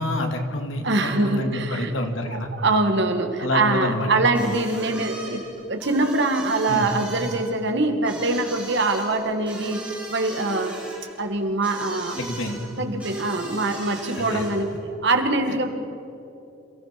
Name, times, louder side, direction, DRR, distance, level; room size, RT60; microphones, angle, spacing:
voice 1, 0.0-2.5 3.4-4.1 6.7-6.9 12.1-12.6 14.2-14.4, left 1 dB, 75° left, 5 dB, 2.3 m, -27 dB
voice 2, 0.8-1.9 2.3-9.8 10.1-10.8 11.2-12.2 12.8-14.7 15.0-15.7, right 2 dB, 60° right, 5 dB, 2.1 m, -23 dB
sound 1, 4.3-14.8, right 2 dB, 5° right, 6.1 m, -39 dB
27.5 x 16.0 x 6.0 m, 2.8 s
head